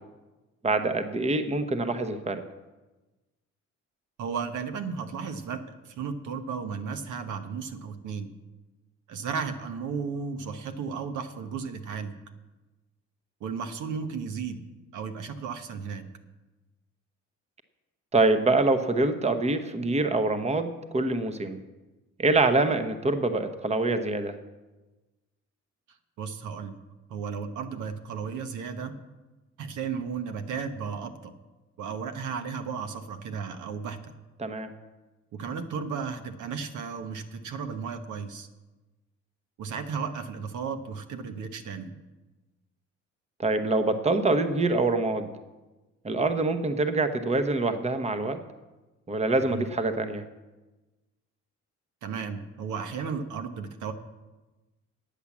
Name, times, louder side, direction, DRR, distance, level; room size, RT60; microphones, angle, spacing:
voice 1, 0.6-2.4 18.1-21.6 22.2-24.3 34.4-34.7 43.4-45.3 46.0-48.4 49.1-50.2, right 2 dB, 20° right, 9 dB, 0.9 m, -25 dB
voice 2, 4.2-8.3 9.1-12.1 13.4-14.6 14.9-16.1 26.2-26.8 27.1-28.9 29.6-31.3 31.8-34.0 35.3-38.5 39.6-42.0 49.5-49.6 52.0-53.9, right 6 dB, 75° right, 8 dB, 1.1 m, -34 dB
10.0 x 8.6 x 7.2 m, 1.1 s
cardioid pair, 90°, 30 cm